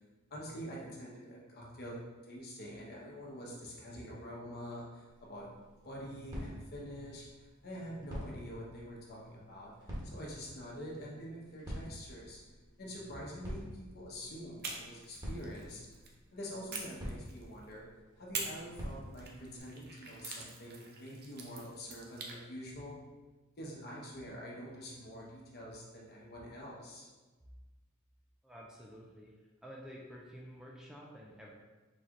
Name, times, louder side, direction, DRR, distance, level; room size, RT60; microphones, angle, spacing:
voice 1, 0.3-2.0 2.2-5.5 5.8-9.7 10.0-12.4 12.8-15.8 16.3-17.9 18.2-23.0 23.6-27.1, equal, 50° left, -3 dB, 1.0 m, -46 dB
sound 1, 5.1-19.6, equal, 20° right, 1.3 m, -48 dB
sound 2, 14.6-16.1 16.7-17.7 18.3-22.4, right 4 dB, 50° right, 0.6 m, -45 dB
voice 2, 28.4-29.4 29.6-31.5, equal, 5° right, -3 dB, 0.4 m, -50 dB
4.2 x 3.2 x 3.7 m, 1.2 s
head